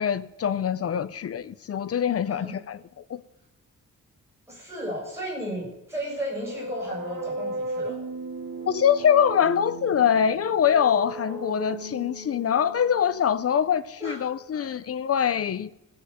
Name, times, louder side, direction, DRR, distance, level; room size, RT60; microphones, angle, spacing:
voice 1, 0.0-2.8 3.1-3.2 8.7-15.7, left 8 dB, 45° left, 0.5 m, -24 dB
voice 2, 4.5-8.0 14.0-14.2 14.5-14.7, equal, 10° right, 7.0 m, -34 dB
sound 1, 6.0-13.7, right 2 dB, 80° right, 2.5 m, -36 dB
16.5 x 6.6 x 7.7 m
wide cardioid pair, 160°, 32 cm